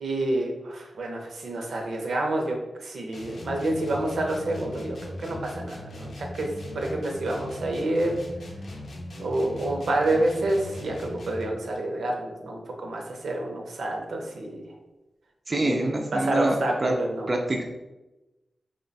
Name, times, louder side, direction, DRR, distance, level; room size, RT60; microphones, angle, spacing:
voice 1, 0.0-5.0 5.2-8.2 9.2-14.6 15.5-17.3, right 1 dB, 85° right, 1 dB, 0.6 m, -28 dB
sound 1, 3.1-11.6, left 1 dB, 80° left, 0.6 m, -39 dB
voice 2, 15.5-16.9 17.3-17.6, right 2 dB, 35° right, 1 dB, 0.4 m, -25 dB
3.0 x 2.2 x 3.9 m, 1.0 s
wide cardioid pair, 130°, 0 cm